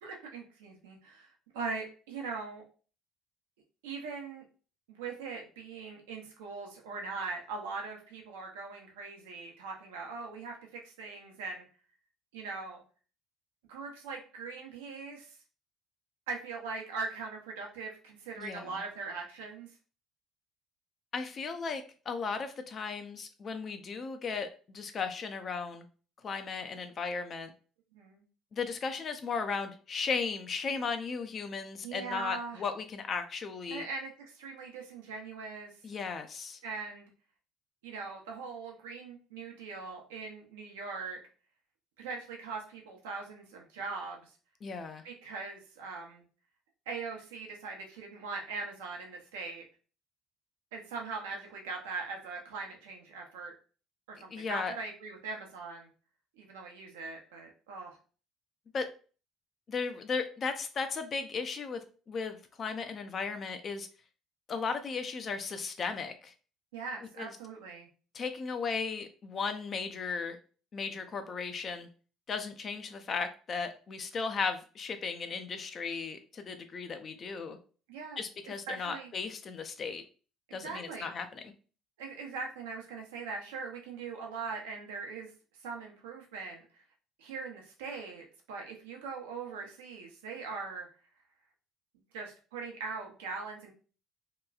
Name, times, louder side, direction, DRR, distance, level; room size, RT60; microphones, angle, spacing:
voice 1, 0.0-2.6 3.8-4.4 4.9-11.7 12.3-12.8 13.7-15.4 16.3-19.7 27.9-28.2 31.8-32.6 33.7-35.7 36.6-37.1 37.8-41.2 42.0-44.3 45.0-46.3 46.9-49.6 50.7-53.5 54.1-55.9 56.4-58.0 66.7-67.9 77.9-78.2 78.7-79.1 80.5-81.1 82.0-85.3 85.6-86.8 87.2-90.9 92.1-93.7, right 4 dB, 80° right, 1 dB, 0.6 m, -41 dB
voice 2, 18.4-18.8 21.1-25.8 26.2-27.5 28.5-33.8 35.8-36.6 44.6-45.0 54.3-54.7 58.7-58.9 59.7-61.8 62.1-63.9 64.5-66.3 67.2-67.3 68.1-70.4 70.7-71.9 72.3-77.6 78.2-80.0 80.5-81.4, left 5 dB, 45° left, 8 dB, 0.4 m, -36 dB
2.9 x 2.2 x 2.3 m, 0.39 s
hypercardioid pair, 60°, 0 cm